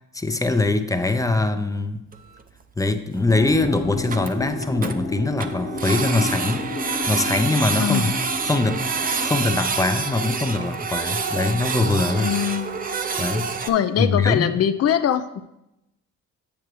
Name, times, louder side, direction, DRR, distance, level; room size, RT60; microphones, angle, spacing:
voice 1, 0.1-2.0 2.8-6.7 7.1-8.1 8.4-12.3 13.2-13.7 14.0-14.6, left 2 dB, 10° left, 9 dB, 0.5 m, -22 dB
Printer, 2.1-2.2 2.4-2.5 2.9-3.0 3.2-3.3 3.6-3.7 3.9-4.9 5.4-13.7, right 5 dB, 30° right, 0.6 m, -27 dB
sound 1, 3.3-9.6, left 2 dB, 30° left, 1.1 m, -31 dB
voice 2, 7.8-8.1 12.2-12.8 13.7-15.4, left 9 dB, 55° left, 12 dB, 0.6 m, -22 dB
8.6 x 7.2 x 3.1 m, 0.90 s
cardioid pair, 90°, 30 cm